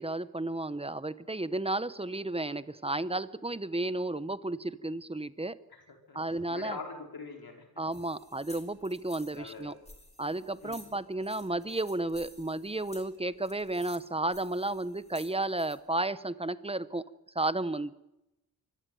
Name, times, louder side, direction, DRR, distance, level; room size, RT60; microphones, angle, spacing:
voice 1, 0.0-5.6 6.1-6.8 7.8-9.7 10.2-17.0 17.3-17.9, right 2 dB, 15° right, 15 dB, 0.9 m, -33 dB
voice 2, 5.7-7.7 9.3-9.8 10.6-10.9, left 4 dB, 75° left, 3 dB, 4.8 m, -44 dB
sound 1, 7.9-15.8, left 1 dB, 15° left, 4.0 m, -54 dB
24.0 x 17.0 x 9.4 m, 0.92 s
wide cardioid pair, 100°, 37 cm